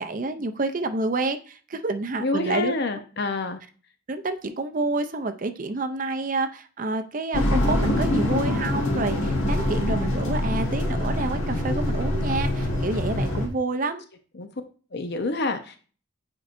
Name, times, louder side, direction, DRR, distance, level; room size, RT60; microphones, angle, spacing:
voice 1, 0.0-2.8 4.1-14.1, right 3 dB, 40° right, 8 dB, 0.5 m, -28 dB
voice 2, 2.2-3.6 14.3-14.5 14.9-15.8, left 3 dB, 50° left, 7 dB, 0.7 m, -27 dB
sound 1, 7.3-13.5, left 1 dB, 65° left, 1.6 m, -24 dB
8.7 x 4.5 x 2.6 m, 0.38 s
head